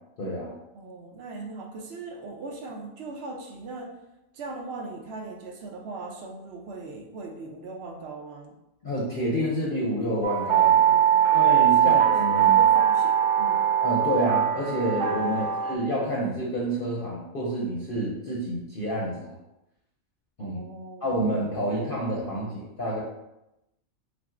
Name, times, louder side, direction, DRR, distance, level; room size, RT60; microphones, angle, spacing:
voice 1, 0.2-0.5 8.8-10.9 11.3-12.6 13.8-19.3 20.4-20.6 21.0-22.5 22.8-23.0, equal, 50° left, -5 dB, 0.8 m, -28 dB
voice 2, 0.7-3.9 4.3-8.5 10.7-13.6 15.2-15.6 20.4-22.6, right 3 dB, 60° right, 1 dB, 0.8 m, -40 dB
sound 1, 10.2-15.8, right 9 dB, 85° right, 0.4 m, -21 dB
5.9 x 2.0 x 2.5 m, 0.90 s
omnidirectional pair, 1.4 m